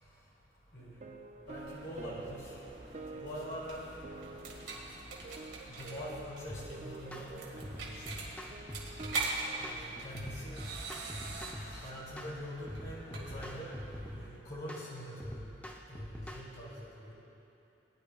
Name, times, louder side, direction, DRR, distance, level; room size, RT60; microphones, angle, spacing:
sound 1, 0.8-10.0, right 3 dB, 40° right, 0.5 m, -49 dB
voice 1, 1.5-2.6 3.1-3.9 5.7-8.0 9.6-10.6 11.7-13.7 14.1-15.5 15.9-17.1, equal, 70° left, -8 dB, 2.9 m, -44 dB
sound 2, 1.5-14.3, right 3 dB, 80° right, 2.1 m, -43 dB
sound 3, 6.5-6.7 7.1-7.3 7.6-9.2 9.6-9.8 10.1-11.7 12.2-12.3 12.7-14.3 14.7-14.9 15.2-16.4, equal, 10° left, 0.6 m, -44 dB
19.5 x 11.0 x 2.3 m, 2.9 s
head